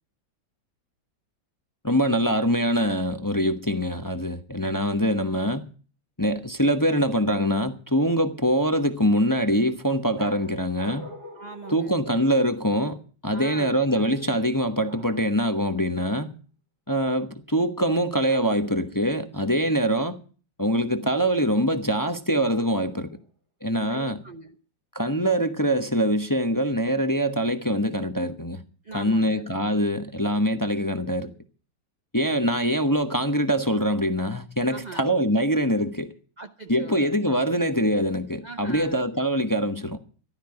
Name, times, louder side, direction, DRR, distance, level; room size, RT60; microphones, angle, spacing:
voice 1, 1.8-5.7 6.2-11.1 11.7-13.0 13.2-16.3 16.9-20.2 20.6-23.1 23.6-24.2 24.9-28.6 28.9-31.3 32.1-36.1 36.7-40.0, equal, 15° left, 0.8 m, -24 dB
sound 1, 10.2-12.7 13.8-14.5 14.9-15.3 18.3-18.9 22.5-23.2, equal, 60° right, 3.9 m, -44 dB
voice 2, 11.3-12.0 13.3-13.8 23.9-24.6 28.8-29.5 34.7-35.1 36.4-37.1 38.4-39.0, right 3 dB, 40° right, 0.6 m, -40 dB
15.0 x 12.5 x 4.8 m
omnidirectional pair, 2.0 m